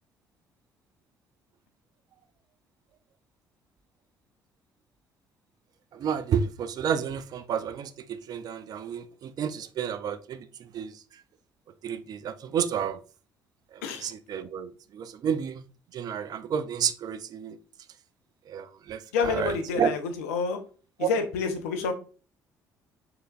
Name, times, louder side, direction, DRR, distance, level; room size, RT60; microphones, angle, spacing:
voice 1, 6.0-10.4 10.7-10.9 11.8-13.0 14.0-15.6 15.9-17.6 18.5-19.9 21.0-21.1, right 8 dB, 50° right, 0.5 m, -30 dB
voice 2, 19.1-20.6 21.0-21.9, left 5 dB, 80° left, 0.6 m, -28 dB
4.3 x 3.8 x 2.4 m
hypercardioid pair, 55°, 8 cm